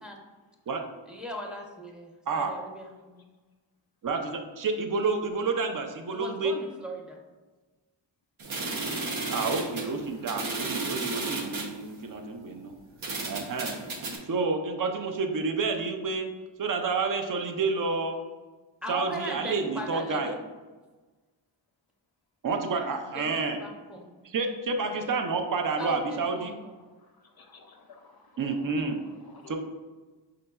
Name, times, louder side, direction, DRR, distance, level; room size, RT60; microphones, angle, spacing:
voice 1, 1.1-3.2 6.1-7.2 18.8-20.4 22.6-24.1 25.8-26.7, equal, ahead, 1 dB, 0.7 m, -39 dB
voice 2, 4.0-6.5 9.3-12.7 13.3-13.7 14.3-16.3 16.6-18.2 18.9-20.3 22.4-23.6 24.2-26.5 28.4-29.0 29.5-29.6, right 4 dB, 45° right, 5 dB, 0.6 m, -29 dB
sound 1, 8.4-11.7 12.5-12.6 13.0-14.2, right 3 dB, 90° right, 0.9 m, -33 dB
voice 3, 27.0-29.6, left 4 dB, 55° left, 4 dB, 0.5 m, -54 dB
5.2 x 3.8 x 2.3 m, 1.3 s
wide cardioid pair, 70°, 46 cm